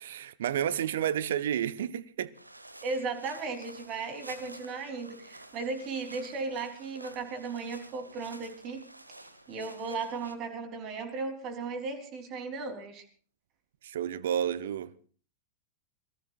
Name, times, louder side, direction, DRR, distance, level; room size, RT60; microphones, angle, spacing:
voice 1, 0.0-2.3 13.8-15.1, right 10 dB, 60° right, 0.8 m, -31 dB
sound 1, 2.3-10.4, right 1 dB, 85° right, 1.4 m, -50 dB
voice 2, 2.8-8.8 9.5-13.1, right 4 dB, 35° right, 3.5 m, -36 dB
26.5 x 18.5 x 2.5 m
figure-of-eight pair, 90°, 0 cm